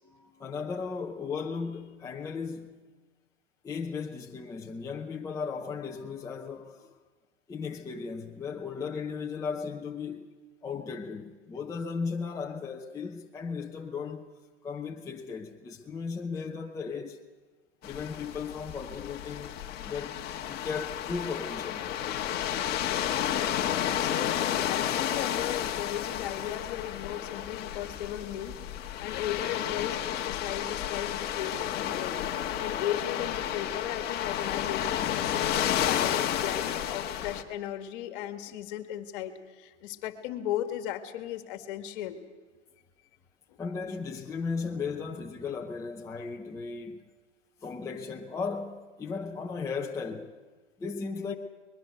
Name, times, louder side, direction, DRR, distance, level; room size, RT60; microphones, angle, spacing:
voice 1, 0.0-2.8 3.6-6.9 7.5-10.3 10.6-14.3 14.6-17.2 17.8-19.6 19.8-20.2 20.5-21.9 23.0-23.2 35.0-35.2 43.6-47.0 47.6-50.3 50.8-51.3, left 5 dB, 10° left, 0.8 m, -36 dB
sound 1, 17.8-37.4, left 10 dB, 25° left, 1.4 m, -31 dB
voice 2, 23.9-28.6 29.0-32.2 32.6-42.2, left 11 dB, 45° left, 1.9 m, -36 dB
23.0 x 21.0 x 6.7 m
hypercardioid pair, 135°, 37 cm